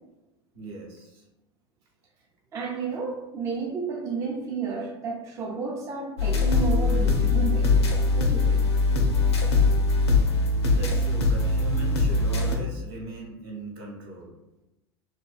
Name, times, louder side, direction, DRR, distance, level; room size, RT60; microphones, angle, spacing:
voice 1, 0.5-1.2 9.3-9.8 10.7-14.3, right 1 dB, 60° right, -2 dB, 0.8 m, -39 dB
voice 2, 2.5-8.7, right 5 dB, 20° right, -1 dB, 0.4 m, -32 dB
sound 1, 6.2-12.6, left 3 dB, 80° left, 0.4 m, -22 dB
2.5 x 2.1 x 2.3 m, 0.96 s
figure-of-eight pair, 80°, 14 cm